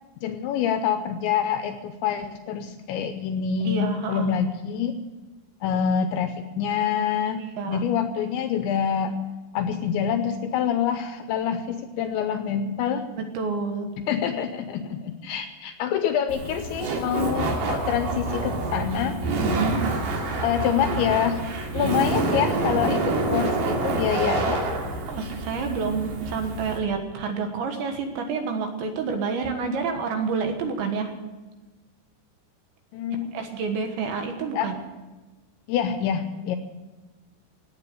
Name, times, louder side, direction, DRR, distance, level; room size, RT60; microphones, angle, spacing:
voice 1, 0.2-5.0 5.6-9.1 9.5-13.1 14.0-19.2 20.4-21.4 21.7-24.7 32.9-33.3 34.5-34.7 35.7-36.6, left 8 dB, 80° left, 8 dB, 2.7 m, -26 dB
voice 2, 3.7-4.4 7.6-7.8 13.2-14.0 19.4-19.9 25.1-31.2 33.3-34.8, right 5 dB, 70° right, 5 dB, 3.5 m, -28 dB
Laughter, 16.3-26.8, right 2 dB, 55° right, 3.1 m, -27 dB
17.0 x 9.0 x 8.3 m, 1.2 s
omnidirectional pair, 5.8 m